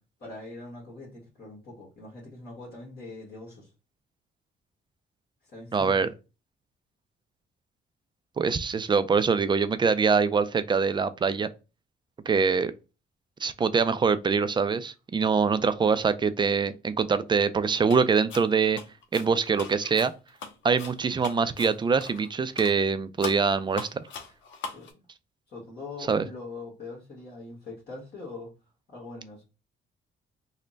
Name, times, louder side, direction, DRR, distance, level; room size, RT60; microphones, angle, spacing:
voice 1, 0.2-3.7 5.4-6.1 24.7-25.0 25.5-28.5 28.9-29.4, left 3 dB, 55° left, 1.5 m, -42 dB
voice 2, 5.7-6.1 8.4-11.5 12.3-12.7 13.4-18.8 19.1-20.1 20.6-24.0 26.1-26.3, right 5 dB, 25° right, 0.4 m, -24 dB
sound 1, 17.9-18.0 18.3-22.3 22.6-22.8 23.2-24.9, left 4 dB, 75° left, 0.7 m, -40 dB
3.2 x 2.1 x 3.9 m
cardioid pair, 90°, 20 cm